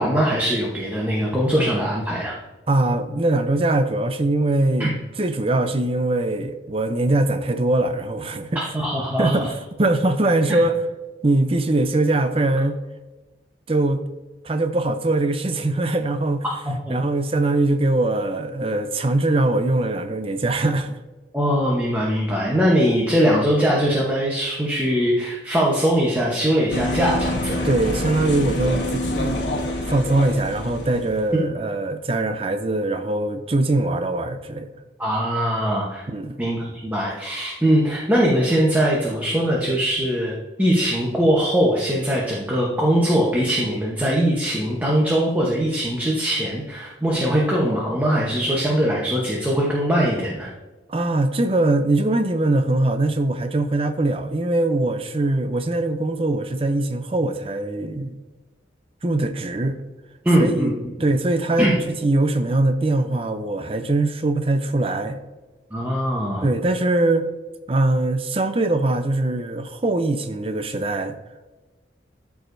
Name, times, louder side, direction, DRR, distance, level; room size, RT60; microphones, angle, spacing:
voice 1, 0.0-2.4 4.8-4.9 8.7-9.5 10.5-10.6 16.6-17.0 21.3-27.7 35.0-36.0 36.4-40.3 40.6-50.5 60.2-60.7 61.6-61.7 65.7-66.4, equal, 10° right, 0.9 m, -21 dB
voice 2, 2.7-8.6 9.2-10.8 11.2-12.8 13.7-14.0 14.4-16.4 16.9-21.0 27.6-29.5 29.9-34.7 36.1-36.3 50.9-58.2 59.0-59.8 60.4-60.7 61.0-65.2 66.4-67.3 67.7-71.2, right 2 dB, 30° right, 0.5 m, -22 dB
sound 1, 26.7-31.3, left 1 dB, 70° left, 1.3 m, -27 dB
13.0 x 4.7 x 2.6 m
head